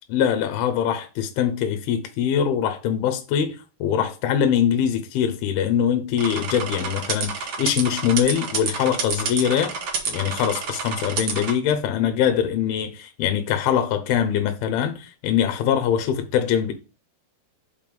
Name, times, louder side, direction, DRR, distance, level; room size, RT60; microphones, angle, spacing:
voice 1, 0.1-9.7 10.1-16.7, left 9 dB, 75° left, 2.6 m, -23 dB
sound 1, 6.2-11.5, right 5 dB, 90° right, 1.2 m, -29 dB
5.6 x 5.2 x 5.2 m
omnidirectional pair, 4.8 m